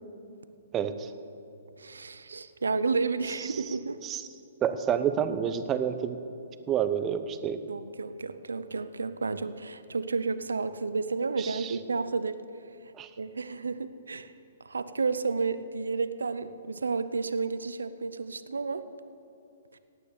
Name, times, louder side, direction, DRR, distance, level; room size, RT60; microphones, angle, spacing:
voice 1, 0.7-1.1 3.4-3.8 4.0-4.2 4.6-6.2 6.7-7.6 11.4-11.8 12.9-13.1, right 8 dB, 20° right, 10 dB, 0.8 m, -29 dB
voice 2, 1.8-4.0 7.7-12.4 13.2-14.3 14.6-18.9 19.7-19.8, right 4 dB, 90° right, 13 dB, 0.7 m, -31 dB
17.0 x 9.3 x 6.8 m, 2.6 s
hypercardioid pair, 135°, 0 cm